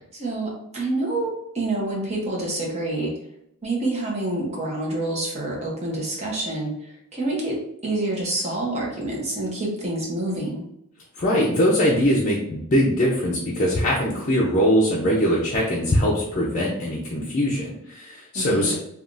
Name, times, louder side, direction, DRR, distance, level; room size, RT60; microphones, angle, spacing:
voice 1, 0.1-3.1 3.6-10.6 18.3-18.7, right 2 dB, 30° right, -3 dB, 0.8 m, -27 dB
voice 2, 11.2-18.7, equal, 35° left, -5 dB, 0.5 m, -21 dB
3.4 x 2.3 x 2.5 m, 0.76 s
head